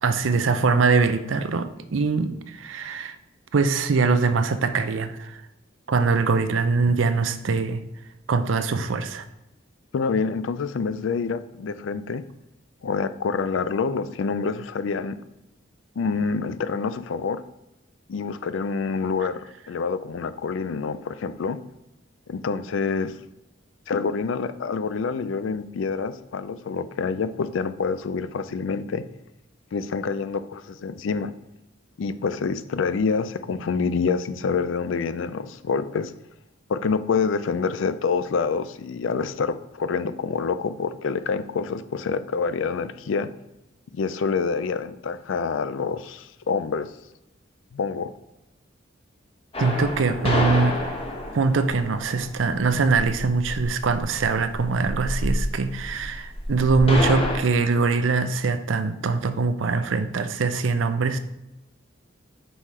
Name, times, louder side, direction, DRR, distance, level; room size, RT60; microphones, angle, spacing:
voice 1, 0.0-3.2 3.5-5.4 5.9-7.8 8.3-9.2 49.6-50.8 51.3-61.2, right 4 dB, 75° right, 10 dB, 0.5 m, -23 dB
voice 2, 9.9-12.2 12.8-15.2 16.0-17.4 18.1-21.6 22.3-23.1 23.9-29.0 29.7-31.3 32.0-36.1 36.7-43.3 43.9-46.9 47.7-48.1, left 5 dB, 70° left, 13 dB, 0.4 m, -27 dB
sound 1, 49.5-57.4, left 1 dB, 30° left, 1.1 m, -29 dB
5.6 x 4.8 x 4.2 m, 0.92 s
head